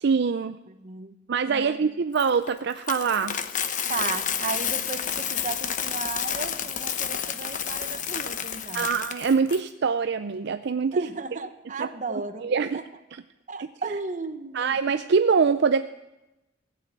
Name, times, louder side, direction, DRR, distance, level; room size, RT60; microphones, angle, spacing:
voice 1, 0.0-0.6 1.3-3.4 8.7-11.1 11.8-11.9 12.4-12.8 13.6-13.7 14.5-15.8, right 5 dB, 60° right, 10 dB, 0.5 m, -24 dB
voice 2, 0.7-1.2 1.5-1.8 3.9-9.0 10.9-12.8 13.5-14.7, right 4 dB, 40° right, 9 dB, 1.0 m, -35 dB
Coin (dropping), 2.2-9.6, left 8 dB, 40° left, 0.8 m, -30 dB
15.5 x 8.3 x 9.0 m, 0.99 s
head